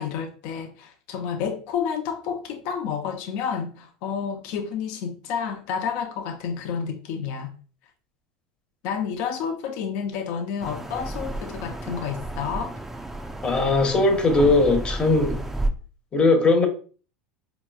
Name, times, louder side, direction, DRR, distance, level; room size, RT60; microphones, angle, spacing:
voice 1, 0.0-7.5 8.8-12.8, left 7 dB, 65° left, 0.6 m, -30 dB
sound 1, 10.6-15.7, right 2 dB, 10° right, 0.4 m, -32 dB
voice 2, 13.4-15.4 16.1-16.7, left 3 dB, 25° left, 0.9 m, -19 dB
4.7 x 2.9 x 2.3 m
supercardioid pair, 105°, 4 cm